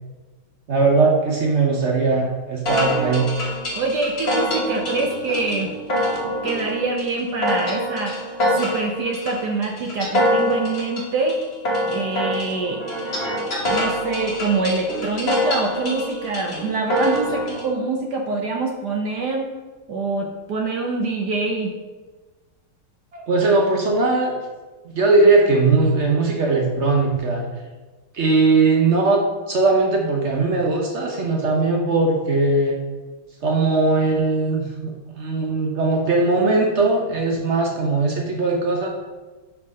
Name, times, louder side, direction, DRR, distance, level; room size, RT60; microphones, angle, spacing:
voice 1, 0.7-3.3 23.1-24.3 24.8-27.5 28.1-29.2 29.5-32.8 33.4-38.9, right 3 dB, 85° right, 0 dB, 0.6 m, -19 dB
sound 1, 2.7-17.7, equal, 35° left, 1.3 m, -25 dB
voice 2, 3.8-5.7 6.4-11.4 11.9-12.8 13.6-19.5 19.9-21.7, right 3 dB, 70° right, 2 dB, 1.0 m, -25 dB
5.5 x 4.7 x 5.4 m, 1.3 s
omnidirectional pair, 2.4 m